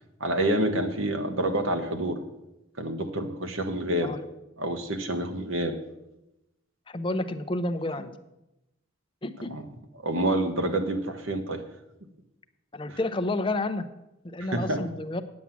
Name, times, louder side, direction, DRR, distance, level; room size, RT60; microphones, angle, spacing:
voice 1, 0.2-2.2 2.8-4.1 4.6-5.7 9.5-9.6 10.0-11.6 12.9-13.0 14.4-14.8, right 1 dB, 75° right, 7 dB, 1.2 m, -28 dB
voice 2, 6.9-8.1 9.2-9.5 12.7-13.9 14.2-15.2, left 2 dB, 25° left, 9 dB, 0.5 m, -30 dB
9.5 x 7.4 x 7.1 m, 0.92 s
head